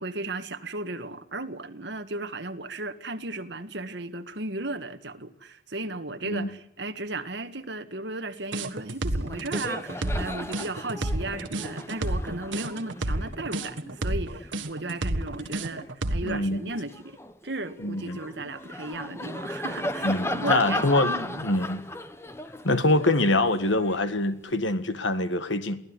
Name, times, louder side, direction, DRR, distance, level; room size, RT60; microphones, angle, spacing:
voice 1, 0.0-17.2 17.4-21.4, right 2 dB, 65° right, 1.9 m, -35 dB
sound 1, 8.5-16.4, right 1 dB, 85° right, 1.6 m, -30 dB
Laughter, 8.8-9.0 9.2-15.9 16.4-24.6, left 1 dB, 15° left, 1.1 m, -36 dB
voice 2, 16.2-16.6 17.8-18.2 20.0-21.1 21.4-21.8 22.6-25.8, left 2 dB, 80° left, 1.8 m, -24 dB
23.5 x 16.0 x 9.9 m
head